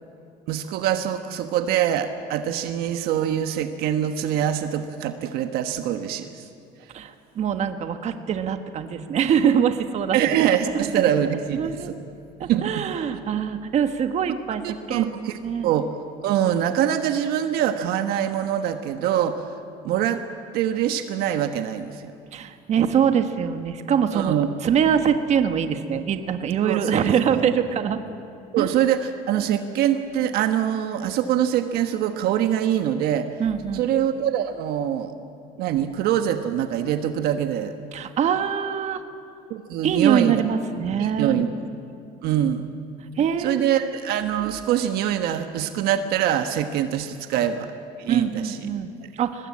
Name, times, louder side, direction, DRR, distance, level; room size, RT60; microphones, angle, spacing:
voice 1, 0.5-6.5 6.8-6.9 10.1-12.0 12.5-12.8 14.9-15.9 16.2-19.5 19.8-20.2 20.5-22.1 24.1-24.5 26.6-27.1 27.3-27.5 28.5-33.3 33.7-35.1 35.6-37.7 39.5-40.4 41.0-41.5 42.2-42.7 43.4-47.7 48.0-48.6 49.0-49.1, right 10 dB, 70° right, 8 dB, 1.2 m, -24 dB
voice 2, 6.9-10.2 10.9-11.0 11.5-11.9 12.4-15.1 15.4-15.7 22.3-24.3 24.6-28.0 28.6-28.7 33.4-33.8 37.9-39.0 39.8-41.4 43.2-43.8 48.1-49.5, right 8 dB, 45° right, 8 dB, 1.4 m, -23 dB
23.0 x 19.0 x 8.6 m, 2.5 s
cardioid pair, 135°, 17 cm